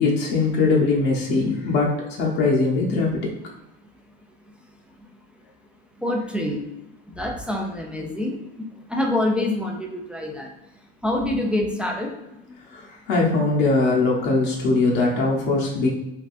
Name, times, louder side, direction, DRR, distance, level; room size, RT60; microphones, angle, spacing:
voice 1, 0.0-1.9 2.2-3.3 12.7-15.9, left 3 dB, 60° left, -3 dB, 0.9 m, -21 dB
voice 2, 6.0-6.6 7.2-8.3 8.9-10.5 11.0-12.1, left 1 dB, 5° right, 1 dB, 0.3 m, -25 dB
3.4 x 2.4 x 2.4 m, 0.92 s
hypercardioid pair, 95°, 32 cm